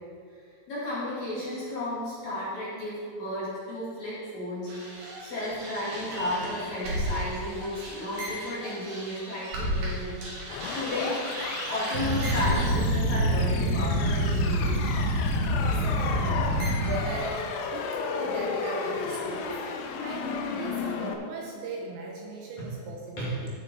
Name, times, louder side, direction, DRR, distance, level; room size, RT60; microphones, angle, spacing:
voice 1, 0.7-4.7 5.2-10.2 10.7-11.2 11.6-14.9 22.6-22.7 23.2-23.3, left 1 dB, 45° left, -9 dB, 3.1 m, -33 dB
sound 1, 4.7-9.9 10.2-16.9, equal, 55° right, 3.6 m, -29 dB
sound 2, 10.5-21.1, left 5 dB, 80° left, 3.0 m, -34 dB
voice 2, 15.6-23.5, right 3 dB, 75° right, -1 dB, 2.9 m, -38 dB
15.5 x 6.5 x 4.3 m, 2.2 s
omnidirectional pair, 5.7 m